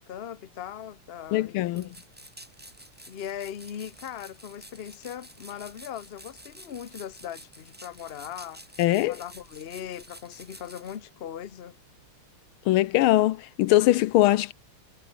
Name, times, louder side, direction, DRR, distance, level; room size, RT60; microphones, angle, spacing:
voice 1, 0.0-2.0 3.1-8.7 9.1-11.8, left 9 dB, 55° left, 0.6 m, -39 dB
voice 2, 1.3-1.9 8.8-9.2 12.7-14.5, left 15 dB, 80° left, 1.5 m, -21 dB
sound 1, 1.8-11.0, right 1 dB, 5° right, 0.9 m, -50 dB
omnidirectional pair, 2.4 m